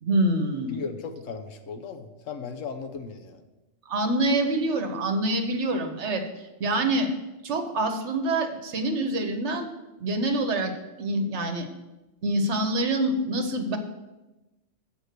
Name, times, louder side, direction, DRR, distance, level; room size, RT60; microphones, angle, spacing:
voice 1, 0.0-0.8 3.9-6.2 6.6-7.1 7.4-9.7 10.0-10.7 11.0-11.7 12.2-13.8, right 1 dB, 60° right, 6 dB, 1.1 m, -26 dB
voice 2, 0.7-3.4, left 5 dB, 75° left, 7 dB, 1.1 m, -36 dB
7.9 x 5.2 x 6.6 m, 1.0 s
omnidirectional pair, 1.4 m